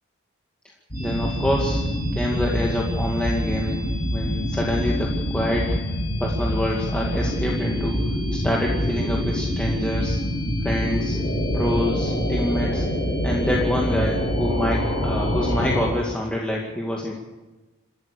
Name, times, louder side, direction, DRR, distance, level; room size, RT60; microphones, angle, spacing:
sound 1, 0.9-15.9, equal, 45° left, 6.4 m, -25 dB
voice 1, 1.0-1.8 2.1-5.8 6.2-8.0 8.4-10.2 10.6-11.2 11.5-12.9 13.2-17.1, left 1 dB, 5° left, -2 dB, 2.2 m, -26 dB
28.0 x 13.5 x 6.9 m, 1.2 s
head